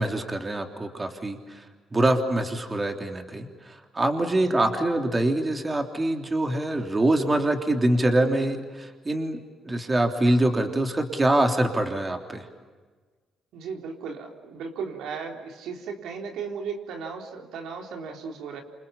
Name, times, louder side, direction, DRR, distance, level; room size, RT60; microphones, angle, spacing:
voice 1, 0.0-1.6 1.9-12.4, right 1 dB, 25° right, 4 dB, 3.3 m, -24 dB
voice 2, 13.5-18.6, right 5 dB, 85° right, 2 dB, 4.0 m, -36 dB
28.0 x 27.5 x 7.2 m, 1.4 s
cardioid pair, 90°, 0 cm